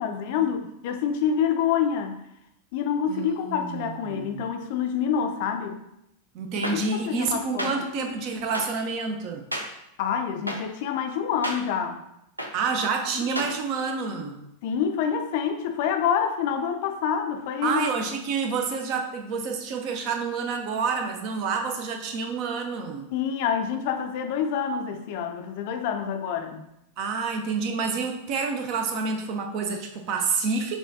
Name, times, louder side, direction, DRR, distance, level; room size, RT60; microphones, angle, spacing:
voice 1, 0.0-2.2 2.7-5.8 6.5-6.8 7.1-7.7 10.0-12.0 13.2-13.3 14.6-17.8 23.1-26.6, left 7 dB, 50° left, 5 dB, 0.4 m, -27 dB
voice 2, 3.1-4.4 6.3-9.4 12.5-14.4 17.6-23.1 27.0-30.8, right 4 dB, 40° right, 4 dB, 0.5 m, -28 dB
sound 1, 6.6-6.7 7.6-7.7 8.5-8.6 9.5-9.6 10.5-10.6 11.4-11.6 12.4-12.5 13.3-13.5, equal, 85° right, 0.5 m, -29 dB
6.1 x 2.3 x 2.6 m, 0.82 s
figure-of-eight pair, 90°, 0 cm